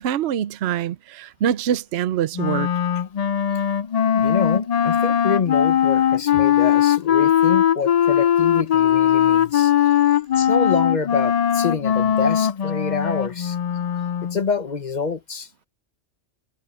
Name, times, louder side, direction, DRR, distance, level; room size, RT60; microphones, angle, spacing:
voice 1, 0.0-2.7, right 10 dB, 65° right, 0.9 m, -24 dB
Wind instrument woodwind instrument, 2.3-14.4, left 9 dB, 65° left, 0.4 m, -19 dB
voice 2, 4.2-9.7 10.4-13.6 14.3-15.5, left 5 dB, 40° left, 1.1 m, -27 dB
omnidirectional pair, 1.2 m